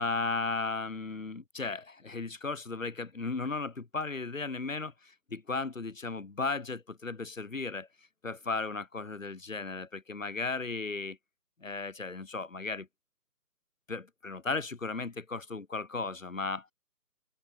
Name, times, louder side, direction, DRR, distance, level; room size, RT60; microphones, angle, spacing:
voice 1, 0.0-7.9 8.2-11.2 11.6-12.9 13.9-16.7, left 3 dB, 50° left, 4.8 m, -35 dB
open air
figure-of-eight pair, 180°, 50 cm